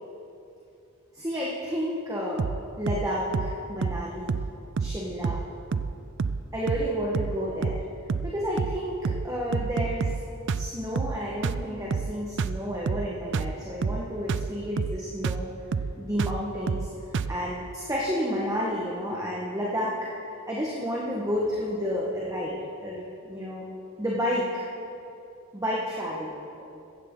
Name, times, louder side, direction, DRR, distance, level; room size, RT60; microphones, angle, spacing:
voice 1, 1.1-2.5 2.8-4.4 4.8-5.4 6.5-7.8 8.2-10.2 10.5-15.5 15.9-16.9 17.3-23.6 24.0-24.6 25.5-26.3, equal, 15° right, -4 dB, 1.4 m, -31 dB
sound 1, 2.4-2.6 2.9-3.1 3.3-3.6 3.8-4.0 4.3-4.5 4.8-5.0 5.2-5.5 5.7-5.9 6.2-6.4 6.7-6.9 7.1-7.4 7.6-7.8 8.1-8.3 8.6-8.8 9.0-9.3 9.5-10.2 10.5-10.7 11.0-11.2 11.4-11.6 11.9-12.1 12.4-12.6 12.9-13.1 13.3-13.6 13.8-14.0 14.3-14.5 14.8-15.0 15.2-15.5 15.7-15.9 16.2-16.4 16.7-16.9 17.1-17.4, right 5 dB, 55° right, 0.4 m, -28 dB
15.5 x 14.0 x 3.9 m, 2.6 s
head